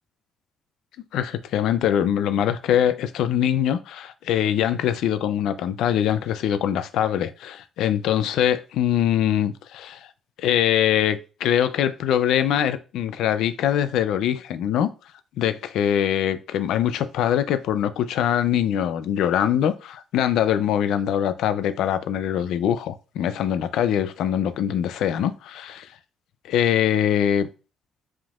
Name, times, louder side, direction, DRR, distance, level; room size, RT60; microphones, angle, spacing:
voice 1, 1.1-10.1 10.4-14.9 15.4-25.9 26.5-27.5, left 10 dB, 85° left, 0.5 m, -23 dB
4.9 x 3.6 x 2.4 m
cardioid pair, 90°, 0 cm